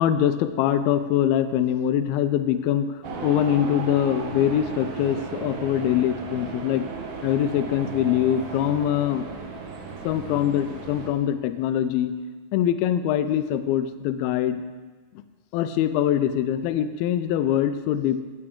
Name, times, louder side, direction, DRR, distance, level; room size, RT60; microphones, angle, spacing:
voice 1, 0.0-2.9 3.2-6.9 7.2-9.3 10.0-12.2 12.5-14.6 15.5-18.2, left 10 dB, 90° left, 10 dB, 2.1 m, -23 dB
sound 1, 3.0-11.1, right 5 dB, 85° right, 1.7 m, -35 dB
15.5 x 7.8 x 3.7 m, 1.4 s
omnidirectional pair, 4.9 m